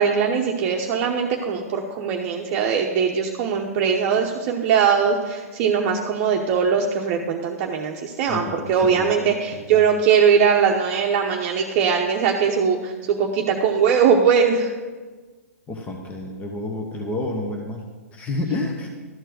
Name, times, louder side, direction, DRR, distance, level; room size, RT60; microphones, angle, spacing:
voice 1, 0.0-14.7, right 6 dB, 40° right, 1 dB, 0.9 m, -20 dB
voice 2, 8.3-9.9 15.7-17.8 18.1-18.9, left 2 dB, 15° left, 1 dB, 1.0 m, -30 dB
12.5 x 4.5 x 7.6 m, 1.4 s
hypercardioid pair, 125°, 8 cm